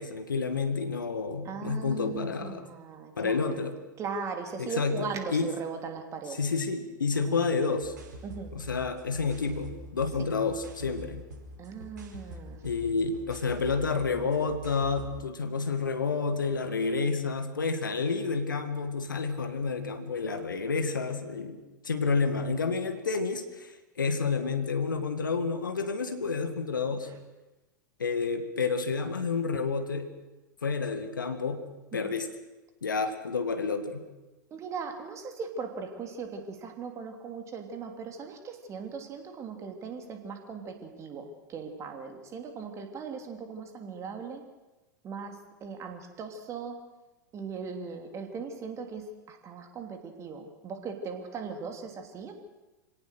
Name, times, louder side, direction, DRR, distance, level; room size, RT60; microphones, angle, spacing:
voice 1, 0.0-2.7 3.2-3.8 4.6-5.5 6.3-7.9 8.5-11.2 12.6-27.1 28.0-30.1 30.6-31.6 31.9-32.3 32.8-34.0, left 4 dB, 75° left, 9 dB, 1.9 m, -30 dB
voice 2, 1.4-3.7 4.0-6.4 7.3-7.4 8.2-8.5 11.6-12.6 31.9-32.1 34.5-44.4 45.0-46.8 47.3-52.3, right 5 dB, 25° right, 5 dB, 3.1 m, -39 dB
dope distorted beat, 7.8-15.2, equal, 60° right, 4.9 m, -46 dB
26.5 x 17.5 x 6.6 m, 1.1 s
figure-of-eight pair, 90°, 11 cm